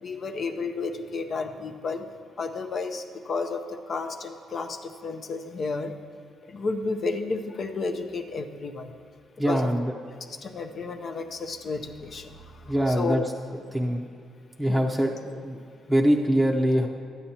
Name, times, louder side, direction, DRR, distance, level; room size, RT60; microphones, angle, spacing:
voice 1, 0.0-2.0 2.4-5.9 6.5-8.9 9.5-9.7 10.4-13.2 14.7-15.0, left 4 dB, 50° left, 5 dB, 0.6 m, -32 dB
voice 2, 9.4-9.9 12.7-13.2 13.7-14.0 14.6-15.6 15.9-16.9, equal, 5° right, -3 dB, 0.7 m, -23 dB
12.0 x 9.3 x 2.9 m, 2.4 s
cardioid pair, 90°, 0 cm